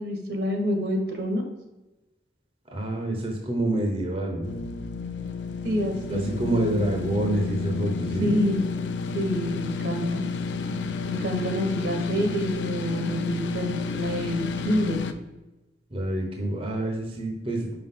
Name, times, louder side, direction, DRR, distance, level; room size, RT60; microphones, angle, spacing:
voice 1, 0.0-1.4 5.6-6.9 8.2-8.6 9.1-10.2 11.0-15.1, equal, 65° right, 4 dB, 1.2 m, -27 dB
voice 2, 2.7-4.4 6.1-8.3 15.9-17.8, right 1 dB, 30° right, 1 dB, 0.9 m, -27 dB
sound 1, 4.4-15.1, left 4 dB, 85° left, 0.5 m, -31 dB
5.6 x 5.1 x 3.7 m, 1.0 s
head